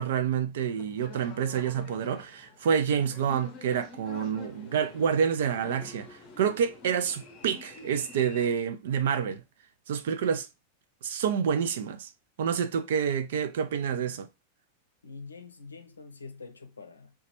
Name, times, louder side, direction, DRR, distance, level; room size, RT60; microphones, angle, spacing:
voice 1, 0.0-9.4 9.9-10.5 11.0-12.1 12.4-14.3, right 7 dB, 60° right, 0.4 m, -28 dB
sound 1, 0.6-8.5, left 3 dB, 35° left, 0.7 m, -48 dB
voice 2, 15.0-17.1, left 4 dB, 75° left, 0.5 m, -45 dB
2.9 x 2.3 x 2.9 m
figure-of-eight pair, 90°, 0 cm